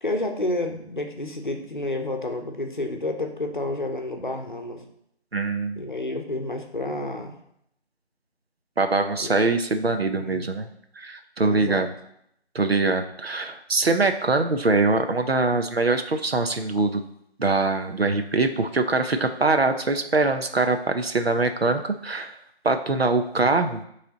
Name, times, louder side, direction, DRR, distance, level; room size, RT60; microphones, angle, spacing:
voice 1, 0.0-4.8 5.8-7.4 9.2-9.4 10.1-10.5 11.4-11.9, left 2 dB, 45° left, 4 dB, 0.8 m, -30 dB
voice 2, 5.3-5.8 8.8-10.7 11.0-11.9 12.5-17.0 17.4-22.4 22.6-23.8, right 3 dB, 65° right, 7 dB, 0.7 m, -23 dB
8.1 x 3.3 x 4.0 m, 0.74 s
figure-of-eight pair, 175°, 33 cm